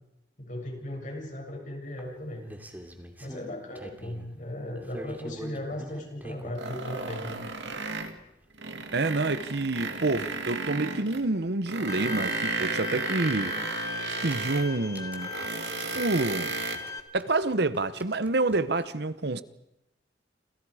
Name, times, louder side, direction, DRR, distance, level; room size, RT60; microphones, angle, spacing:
voice 1, 0.4-2.5 3.2-7.4, left 1 dB, 45° left, 7.3 m, -37 dB
sound 1, 2.0-4.3 4.8-6.7 7.6-7.7 8.1-8.2 8.4-8.5 8.8-8.9 10.8-10.9 11.2-11.3 13.2-13.4 14.1-16.9 17.2-18.8, equal, 10° right, 2.6 m, -45 dB
sound 2, 6.6-8.2 8.5-11.3 11.7-14.7 15.1-16.8, right 4 dB, 85° right, 2.3 m, -34 dB
voice 2, 8.9-13.6 14.2-15.3 15.9-16.5 17.1-19.4, right 2 dB, 65° right, 1.0 m, -28 dB
Bowed string instrument, 11.9-17.0, left 3 dB, 20° left, 1.5 m, -37 dB
28.5 x 28.0 x 5.0 m
head